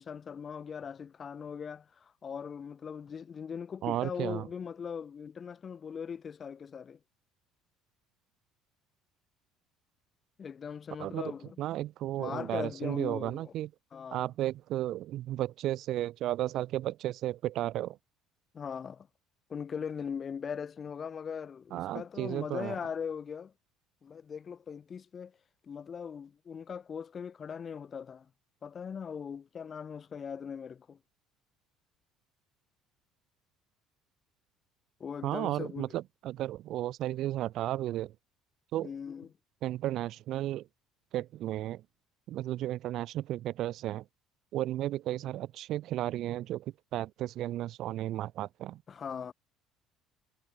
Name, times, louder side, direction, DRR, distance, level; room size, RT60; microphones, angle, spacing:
voice 1, 0.0-7.0 10.4-11.6 12.2-13.5 13.9-14.3 18.5-19.1 19.5-23.5 24.0-25.3 25.6-28.3 28.6-31.0 35.0-35.9 38.8-39.3 48.9-49.3, left 7 dB, 30° left, 6.6 m, -40 dB
voice 2, 3.8-4.5 11.0-11.2 11.6-13.7 14.1-18.0 21.7-22.7 35.2-38.1 38.7-38.9 39.6-40.7 41.1-41.8 42.3-44.0 44.5-48.8, right 14 dB, 55° right, 2.7 m, -34 dB
cardioid pair, 150°, 0 cm